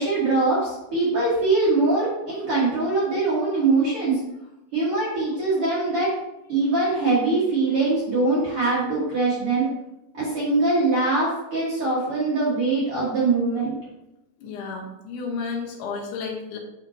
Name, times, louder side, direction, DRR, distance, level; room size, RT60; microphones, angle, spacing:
voice 1, 0.0-4.2 4.7-6.1 6.5-9.7 10.1-13.7, right 3 dB, 80° right, -9 dB, 1.2 m, -22 dB
voice 2, 14.4-16.6, left 4 dB, 75° left, -2 dB, 1.9 m, -32 dB
7.7 x 5.3 x 2.8 m, 0.89 s
omnidirectional pair, 5.2 m